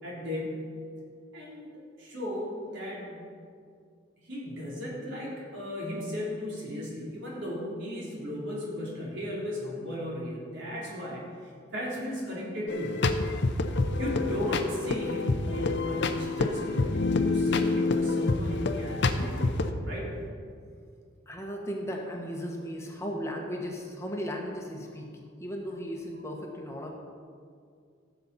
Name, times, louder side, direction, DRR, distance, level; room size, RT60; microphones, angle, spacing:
voice 1, 0.0-0.6 1.3-1.7 2.0-3.3 4.2-13.0 14.0-19.6 19.8-20.1, left 1 dB, 65° right, -5 dB, 3.2 m, -36 dB
sound 1, 12.7-19.7, left 3 dB, 60° left, 0.7 m, -27 dB
voice 2, 21.3-25.1 25.4-26.9, equal, 15° left, 0 dB, 1.1 m, -36 dB
15.5 x 7.0 x 4.1 m, 2.2 s
head